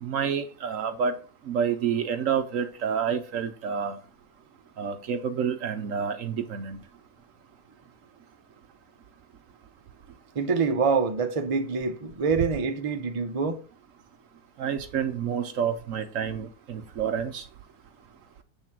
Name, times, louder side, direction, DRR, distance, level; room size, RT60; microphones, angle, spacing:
voice 1, 0.0-1.1 1.5-4.0 4.8-6.8 14.6-17.4, right 7 dB, 60° right, 1.0 m, -28 dB
voice 2, 10.3-13.6, right 5 dB, 35° right, 0.6 m, -26 dB
8.2 x 3.6 x 5.9 m
omnidirectional pair, 1.7 m